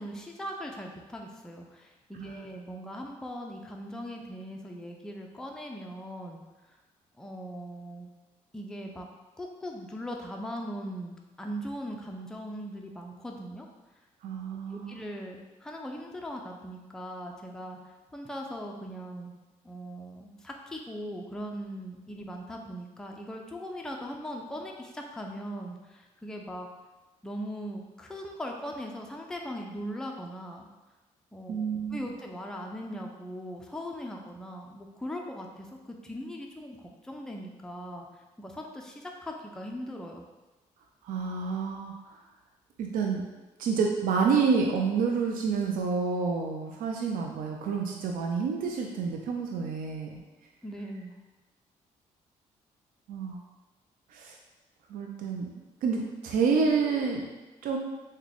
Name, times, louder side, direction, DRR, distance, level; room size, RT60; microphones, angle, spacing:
voice 1, 0.0-6.4 6.7-6.8 7.2-8.1 8.5-9.1 9.4-13.7 14.5-19.3 19.6-26.7 27.2-30.7 31.3-38.1 38.4-40.2 50.6-51.1, equal, 5° left, 1 dB, 0.4 m, -40 dB
voice 2, 14.2-15.0 31.5-32.0 41.0-41.9 42.8-43.2 43.6-50.2 53.1-53.4 54.1-54.4 54.9-57.2 57.6-57.8, right 5 dB, 70° right, 1 dB, 0.4 m, -28 dB
3.6 x 2.2 x 3.3 m, 1.1 s
supercardioid pair, 70°, 15 cm